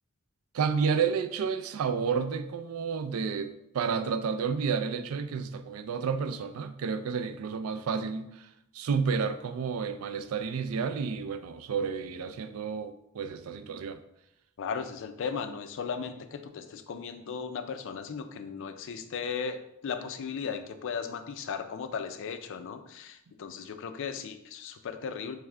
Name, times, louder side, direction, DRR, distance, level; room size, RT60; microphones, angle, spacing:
voice 1, 0.5-8.5 8.7-14.0, right 6 dB, 75° right, 10 dB, 0.4 m, -31 dB
voice 2, 14.6-25.3, left 6 dB, 60° left, 9 dB, 0.4 m, -36 dB
3.4 x 3.3 x 3.6 m, 0.81 s
head